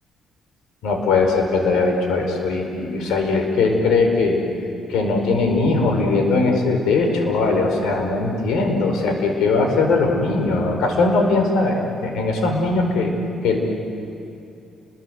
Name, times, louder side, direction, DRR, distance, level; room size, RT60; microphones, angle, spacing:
voice 1, 0.8-4.4 4.9-13.1 13.4-13.6, left 3 dB, 85° left, 4 dB, 4.9 m, -20 dB
30.0 x 23.0 x 8.0 m, 2.7 s
cardioid pair, 90°, 0 cm